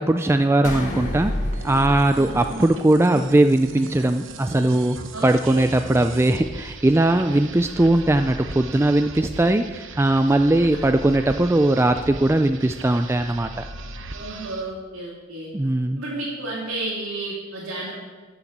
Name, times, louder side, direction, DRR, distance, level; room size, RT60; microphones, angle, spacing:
voice 1, 0.0-1.3 1.6-5.0 5.2-13.7 15.5-16.0, right 1 dB, 10° right, 8 dB, 0.3 m, -19 dB
sound 1, 0.6-3.2, left 1 dB, 35° left, 2.0 m, -29 dB
sound 2, 1.5-14.7, right 3 dB, 65° right, 0.9 m, -38 dB
voice 2, 2.2-2.5 5.1-5.7 10.8-11.0 14.1-15.5 16.0-17.9, right 2 dB, 80° right, -6 dB, 2.8 m, -32 dB
13.0 x 7.0 x 7.2 m, 1.4 s
head